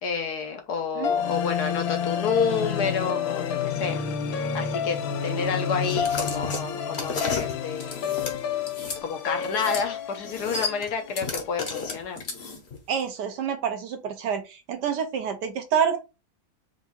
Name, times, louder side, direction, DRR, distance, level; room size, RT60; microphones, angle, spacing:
voice 1, 0.0-4.0 4.5-8.4 9.0-12.2, left 6 dB, 65° left, 1.2 m, -29 dB
sound 1, 1.0-11.3, left 7 dB, 80° left, 1.5 m, -29 dB
sound 2, 5.8-9.0 9.4-9.9 10.1-12.8, left 4 dB, 40° left, 1.1 m, -33 dB
voice 2, 12.9-14.4 14.7-16.0, right 7 dB, 70° right, 1.2 m, -27 dB
4.7 x 2.6 x 4.0 m
omnidirectional pair, 2.1 m